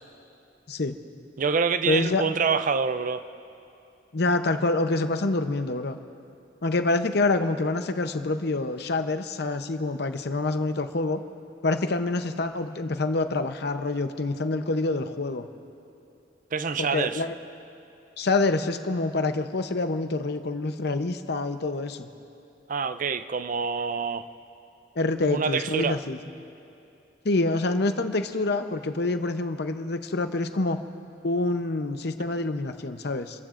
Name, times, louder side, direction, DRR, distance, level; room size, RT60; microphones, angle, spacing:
voice 1, 0.7-1.0 1.9-2.3 4.1-6.0 6.6-11.2 11.6-15.5 16.8-17.3 18.2-22.1 25.0-26.2 27.2-30.8 31.2-33.4, left 2 dB, 65° left, 8 dB, 0.8 m, -26 dB
voice 2, 1.4-3.2 16.5-17.2 22.7-24.3 25.3-26.0, right 5 dB, 50° right, 12 dB, 0.5 m, -26 dB
29.0 x 15.0 x 2.6 m, 2.8 s
head